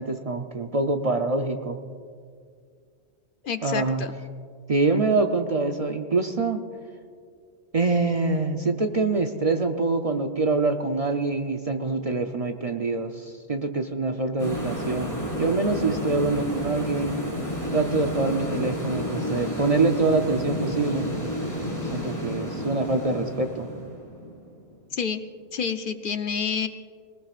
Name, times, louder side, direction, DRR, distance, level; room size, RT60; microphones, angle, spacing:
voice 1, 0.0-1.8 3.6-4.1 4.7-6.6 7.7-15.1 15.4-17.1 17.7-21.1 21.9-23.7, right 3 dB, 40° right, 5 dB, 0.6 m, -25 dB
voice 2, 3.4-4.1 24.9-25.2 25.5-26.7, left 6 dB, 55° left, 9 dB, 0.7 m, -28 dB
sound 1, 14.4-24.9, equal, 15° left, 3.5 m, -31 dB
21.0 x 19.5 x 2.5 m, 2.2 s
omnidirectional pair, 1.2 m